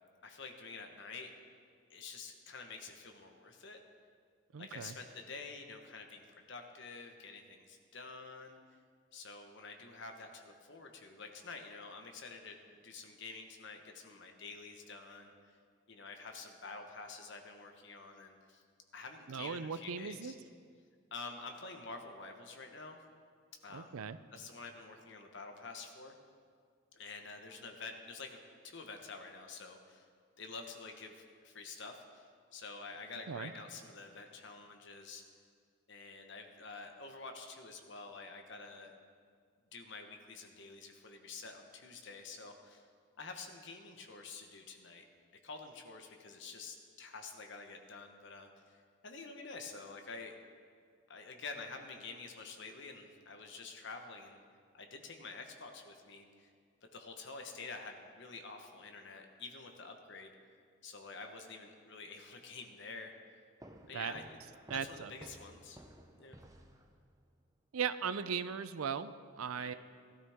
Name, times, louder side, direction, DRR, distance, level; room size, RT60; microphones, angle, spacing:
voice 1, 0.2-1.3 1.9-3.8 4.6-8.6 9.1-12.6 12.8-15.3 15.9-18.6 18.9-20.3 21.1-23.0 23.6-24.0 24.3-26.1 26.9-28.4 28.6-30.0 30.4-32.3 32.5-35.2 35.9-38.9 39.7-42.8 43.2-45.0 45.4-50.4 51.1-54.4 54.7-56.5 56.9-60.3 60.8-63.1 63.9-64.2 64.8-65.8 66.2-66.4 69.6-69.7, left 4 dB, 55° left, 4 dB, 1.2 m, -48 dB
voice 2, 4.5-5.0 19.3-20.3 23.7-24.2 33.3-33.5 63.9-64.1 64.7-65.1 67.7-69.7, right 7 dB, 90° right, 13 dB, 0.5 m, -38 dB
sound 1, 63.6-67.3, right 1 dB, 15° right, 0.7 m, -56 dB
17.5 x 12.5 x 3.6 m, 2.1 s
head